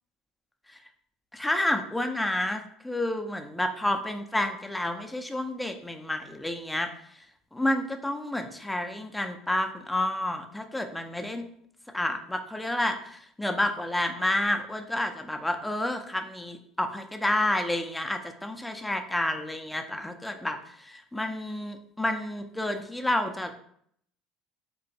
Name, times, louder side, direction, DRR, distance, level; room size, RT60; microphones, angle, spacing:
voice 1, 1.3-6.9 7.5-11.4 11.9-23.5, left 1 dB, 5° left, 6 dB, 0.4 m, -30 dB
3.4 x 3.0 x 2.7 m, 0.67 s
supercardioid pair, 110°, 0 cm